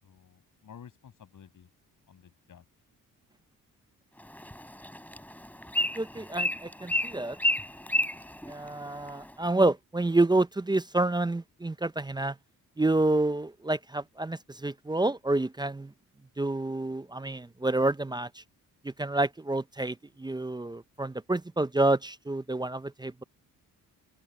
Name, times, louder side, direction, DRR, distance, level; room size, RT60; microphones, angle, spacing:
voice 1, 0.0-1.7 2.1-2.6, left 8 dB, 60° left, 7.4 m, -52 dB
Bird, 4.2-9.3, left 1 dB, 5° left, 5.1 m, -32 dB
voice 2, 5.9-7.4 8.5-12.4 12.8-15.9 16.4-18.4 18.8-23.2, right 2 dB, 10° right, 0.6 m, -28 dB
open air
cardioid pair, 80°, 35 cm